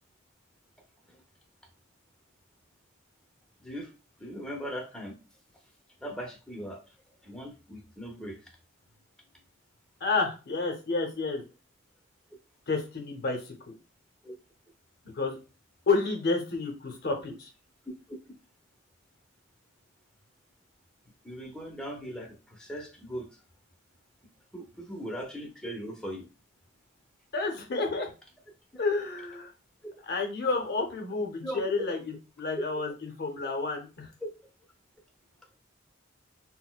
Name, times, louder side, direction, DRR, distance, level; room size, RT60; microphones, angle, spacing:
voice 1, 4.2-5.2 6.0-6.9 7.2-8.5 14.2-14.3 18.1-18.2 21.2-23.3 24.5-26.3 31.4-31.8 32.6-32.7 34.2-34.3, equal, 5° left, 1 dB, 0.6 m, -39 dB
voice 2, 10.0-11.4 12.7-13.7 15.1-15.4 15.9-17.5 27.3-28.1 28.8-29.5 30.1-34.1, left 3 dB, 55° left, 2 dB, 0.6 m, -30 dB
4.1 x 2.1 x 2.2 m, 0.32 s
head